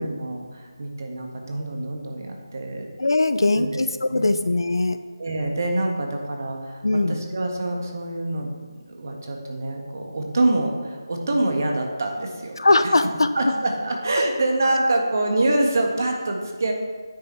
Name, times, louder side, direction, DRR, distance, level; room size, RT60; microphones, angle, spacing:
voice 1, 0.0-2.9 3.3-3.7 4.1-4.4 5.2-8.5 8.8-12.6 12.8-16.7, right 2 dB, 45° right, 1 dB, 1.6 m, -26 dB
voice 2, 3.0-5.0 6.8-7.2 12.6-13.3, left 2 dB, 80° left, 11 dB, 0.7 m, -20 dB
9.4 x 6.8 x 4.5 m, 1.4 s
figure-of-eight pair, 175°, 2 cm